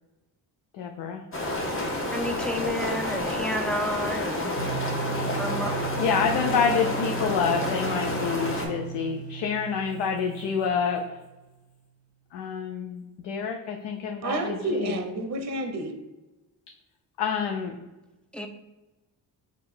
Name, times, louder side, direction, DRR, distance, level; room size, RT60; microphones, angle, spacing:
voice 1, 0.7-1.2 6.0-11.2 12.3-15.0 17.2-17.8, left 6 dB, 65° left, 3 dB, 0.5 m, -28 dB
sound 1, 1.3-8.7, left 1 dB, 30° left, 1.0 m, -29 dB
voice 2, 2.1-4.6 5.4-5.8 18.3-18.5, equal, ahead, 5 dB, 0.4 m, -30 dB
sound 2, 4.6-11.4, right 8 dB, 90° right, 0.7 m, -36 dB
voice 3, 14.2-15.9, right 2 dB, 35° right, 6 dB, 0.7 m, -29 dB
3.6 x 2.4 x 4.2 m, 1.1 s
supercardioid pair, 60°, 45 cm